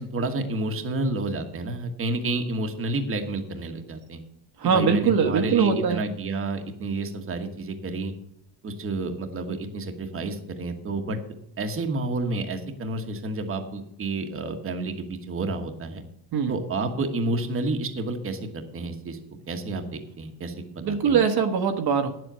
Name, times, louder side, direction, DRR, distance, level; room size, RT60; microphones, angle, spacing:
voice 1, 0.0-4.2 4.6-8.1 8.6-11.2 11.6-16.0 16.5-19.2 19.5-21.2, right 2 dB, 30° right, 5 dB, 1.3 m, -30 dB
voice 2, 4.6-6.0 16.3-16.5 20.8-22.1, right 6 dB, 60° right, 5 dB, 1.3 m, -22 dB
9.9 x 7.7 x 6.7 m, 0.76 s
cardioid pair, 150°, 43 cm